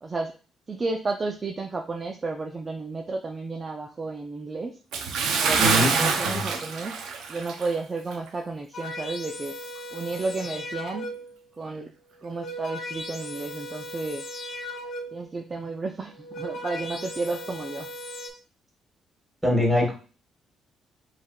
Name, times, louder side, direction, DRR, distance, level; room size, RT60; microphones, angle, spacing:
voice 1, 0.0-0.3 0.7-4.8 5.4-7.0 7.3-9.5 9.9-11.1 11.6-11.9 12.2-14.4 15.1-17.9, right 3 dB, 30° right, 3 dB, 0.5 m, -32 dB
Bathtub (filling or washing) / Splash splatter, 4.9-7.8 8.1-8.3 8.8-8.9, right 5 dB, 85° right, 0.6 m, -25 dB
voice 2, 5.6-6.4 19.4-19.9, left 1 dB, 10° right, -2 dB, 2.2 m, -23 dB
sound 1, 8.7-11.4 12.1-15.3 16.0-18.3, equal, 55° left, 1.0 m, -37 dB
5.4 x 3.4 x 2.4 m, 0.36 s
cardioid pair, 90°, 0 cm